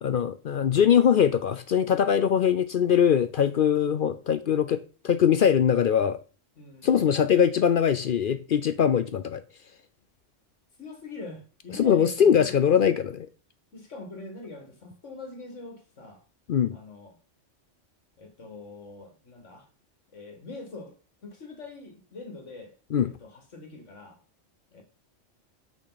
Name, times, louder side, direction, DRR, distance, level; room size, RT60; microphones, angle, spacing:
voice 1, 0.0-6.2 6.8-9.4 11.7-13.2 16.5-16.8 22.9-23.1, left 8 dB, 60° left, 0.6 m, -22 dB
voice 2, 6.6-6.9 8.7-9.1 10.8-12.8 13.7-16.2 16.7-17.2 18.2-19.7 20.1-21.0 21.2-22.7 23.0-24.2 24.7-24.8, left 3 dB, 75° left, 2.3 m, -43 dB
8.7 x 6.0 x 4.1 m
omnidirectional pair, 1.3 m